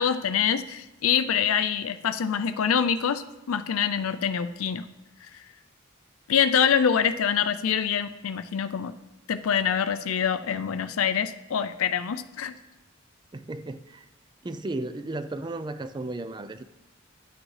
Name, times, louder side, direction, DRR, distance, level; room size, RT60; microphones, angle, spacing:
voice 1, 0.0-4.9 6.3-8.9 9.3-12.5, left 7 dB, 90° left, 11 dB, 0.4 m, -25 dB
voice 2, 13.3-14.1 14.4-16.6, right 2 dB, 20° right, 12 dB, 0.4 m, -34 dB
11.0 x 8.7 x 3.2 m, 0.97 s
head